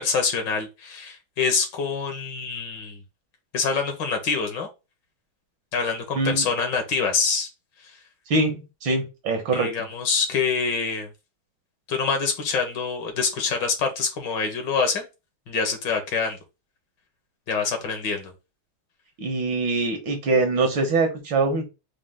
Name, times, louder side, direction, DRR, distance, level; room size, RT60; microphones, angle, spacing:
voice 1, 0.0-3.0 3.5-4.7 5.7-7.5 7.8-8.0 9.5-11.1 11.9-15.1 15.5-16.4 17.5-18.3, left 5 dB, 65° left, 1.7 m, -25 dB
voice 2, 8.3-9.7 19.2-21.6, right 3 dB, 70° right, 1.8 m, -23 dB
5.0 x 2.5 x 3.6 m
omnidirectional pair, 2.2 m